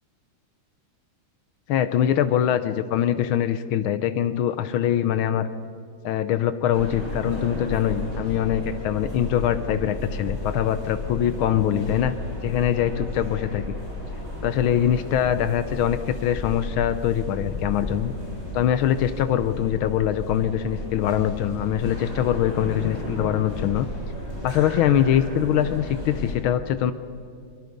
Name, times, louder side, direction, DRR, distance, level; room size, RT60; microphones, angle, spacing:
voice 1, 1.7-5.5 6.0-12.2 12.4-13.7 14.4-18.1 18.5-23.9 24.4-26.9, left 10 dB, 80° left, 12 dB, 1.5 m, -23 dB
sound 1, 6.7-26.3, left 1 dB, 30° left, 6.6 m, -34 dB
23.5 x 23.0 x 5.3 m, 2.4 s
omnidirectional pair, 2.3 m